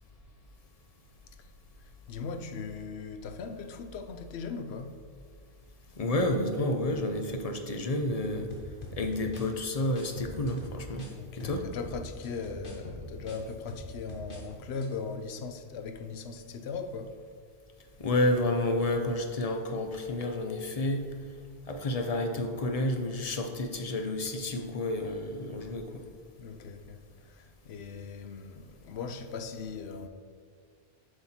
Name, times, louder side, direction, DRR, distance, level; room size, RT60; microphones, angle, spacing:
voice 1, 2.1-5.0 11.1-17.2 26.4-30.1, left 5 dB, 90° left, 0.9 m, -39 dB
voice 2, 6.0-8.5 9.0-11.1 11.4-11.6 18.0-21.1 21.7-25.9, left 1 dB, 40° left, 0.8 m, -30 dB
sound 1, 8.5-11.1 11.4-14.4 14.7-14.9, equal, 55° left, 1.3 m, -43 dB
7.9 x 5.6 x 4.3 m
omnidirectional pair, 1.0 m